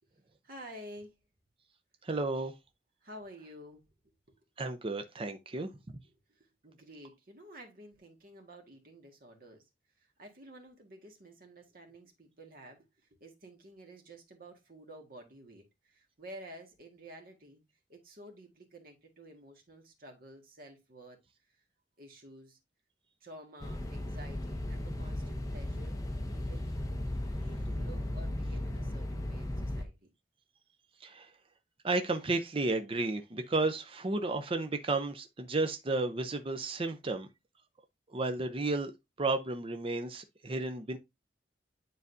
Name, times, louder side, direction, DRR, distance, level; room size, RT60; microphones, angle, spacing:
voice 1, 0.4-1.1 3.0-4.4 5.7-5.8 6.1-9.7 10.0-17.6 17.9-21.2 21.5-21.6 22.0-22.6 23.2-26.0 26.3-26.6 27.4-30.1, right 1 dB, 55° right, 1.8 m, -51 dB
voice 2, 2.0-2.5 4.6-5.7 31.0-31.3 31.8-37.3 38.1-38.9 39.2-41.0, right 2 dB, 30° right, 0.6 m, -32 dB
sound 1, 23.6-29.8, left 1 dB, 20° left, 0.9 m, -36 dB
9.5 x 4.0 x 2.6 m
head